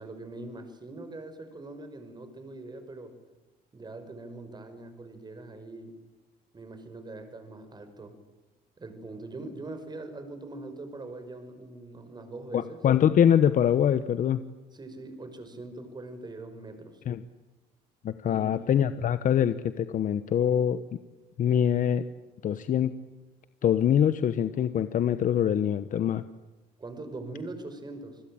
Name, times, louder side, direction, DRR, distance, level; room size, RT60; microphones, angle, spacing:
voice 1, 0.0-3.2 3.7-5.9 6.5-8.1 8.8-12.8 14.7-17.0 18.3-18.7 26.8-28.2, right 2 dB, 25° right, 9 dB, 5.4 m, -42 dB
voice 2, 12.5-14.4 17.1-17.2 18.0-21.0 21.4-22.1 22.4-22.9 23.6-26.2, left 9 dB, 50° left, 12 dB, 1.1 m, -24 dB
29.0 x 21.0 x 8.9 m, 1.1 s
cardioid pair, 110°, 17 cm